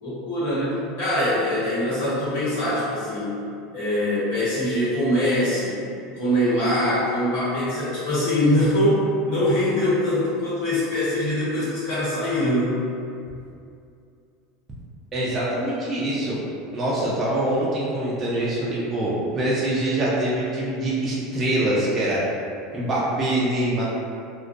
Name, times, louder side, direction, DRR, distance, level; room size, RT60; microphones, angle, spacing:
voice 1, 0.0-3.3 3.7-5.8 6.2-12.8, left 1 dB, 90° left, -11 dB, 1.0 m, -23 dB
voice 2, 15.1-16.4 16.7-22.2 22.7-23.8, right 1 dB, 15° right, -8 dB, 0.3 m, -24 dB
2.4 x 2.1 x 2.5 m, 2.5 s
supercardioid pair, 180°, 0 cm